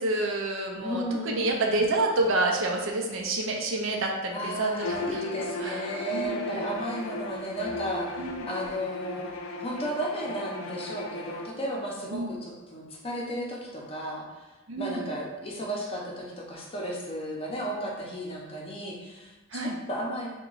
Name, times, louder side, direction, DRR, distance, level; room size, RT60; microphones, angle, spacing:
voice 1, 0.0-5.2 5.6-6.7 8.2-8.5 12.1-12.3 14.7-15.1 19.5-19.8, right 2 dB, 70° right, 1 dB, 0.5 m, -28 dB
voice 2, 0.8-1.5 4.3-8.1 8.5-9.3 9.6-14.3 14.8-20.3, equal, 30° left, -3 dB, 0.6 m, -34 dB
Bowed string instrument, 4.8-11.5, left 2 dB, 80° left, 0.4 m, -36 dB
2.9 x 2.2 x 3.8 m, 1.1 s
head